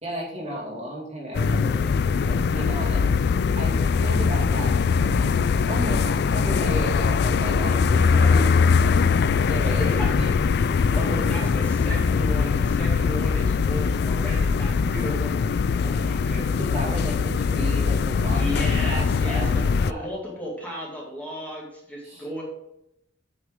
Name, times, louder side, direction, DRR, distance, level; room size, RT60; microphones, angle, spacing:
voice 1, 0.0-3.1 3.6-6.0 6.3-9.0 9.5-10.4 10.9-11.5 16.6-20.1 22.0-22.2, right 1 dB, 35° right, -3 dB, 2.2 m, -34 dB
sound 1, 1.3-19.9, left 5 dB, 55° left, 0.3 m, -22 dB
voice 2, 9.6-10.1 10.9-16.6 18.3-22.4, equal, 10° left, -4 dB, 2.1 m, -35 dB
8.6 x 6.2 x 3.7 m, 0.80 s
head